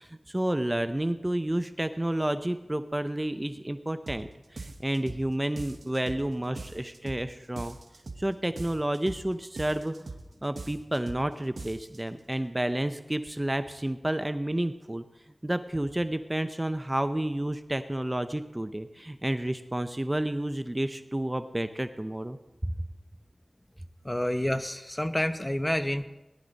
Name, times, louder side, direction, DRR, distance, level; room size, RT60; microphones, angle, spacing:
voice 1, 0.0-7.8 8.2-9.9 10.4-15.0 15.4-22.4 22.6-22.7, right 1 dB, 20° right, 9 dB, 0.6 m, -30 dB
sound 1, 4.1-4.3 4.6-5.3 5.6-6.3 6.6-7.3 7.6-8.3 8.6-9.3 9.6-10.3 10.6-11.3 11.6-12.0, right 3 dB, 80° right, 1.1 m, -41 dB
voice 2, 24.0-26.0, left 1 dB, 20° left, 8 dB, 0.9 m, -28 dB
18.0 x 11.0 x 4.0 m, 1.0 s
wide cardioid pair, 60°, 0 cm